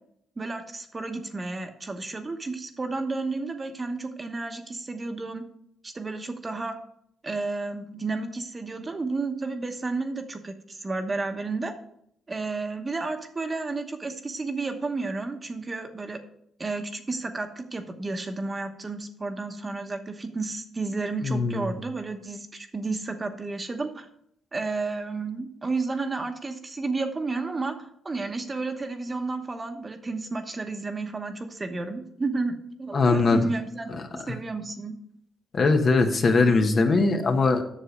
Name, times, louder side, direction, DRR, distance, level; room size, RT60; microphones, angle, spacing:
voice 1, 0.4-5.4 5.8-6.8 7.2-11.7 12.3-16.2 16.6-24.1 24.5-35.0, right 3 dB, 25° right, 6 dB, 1.1 m, -32 dB
voice 2, 21.2-21.7 32.9-33.5 35.5-37.6, left 3 dB, 45° left, 5 dB, 1.0 m, -21 dB
7.5 x 6.7 x 5.2 m, 0.72 s
cardioid pair, 90°, 0 cm